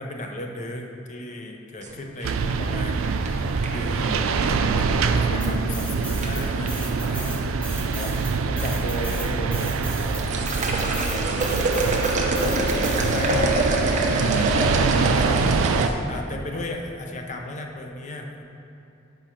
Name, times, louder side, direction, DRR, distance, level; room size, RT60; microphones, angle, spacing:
voice 1, 0.0-8.2 8.5-13.8 14.2-18.4, left 1 dB, 40° left, 2 dB, 0.6 m, -35 dB
sound 1, 1.8-3.9 5.5-5.8 6.2-6.7 7.6-8.1 8.4-8.7 9.1-9.2 9.9-15.9, right 2 dB, 35° right, 0.7 m, -26 dB
sound 2, 2.2-15.9, right 4 dB, 90° right, 0.3 m, -24 dB
sound 3, 5.4-6.4 6.7-13.5, equal, 5° left, 1.3 m, -38 dB
5.0 x 4.5 x 5.7 m, 2.8 s
head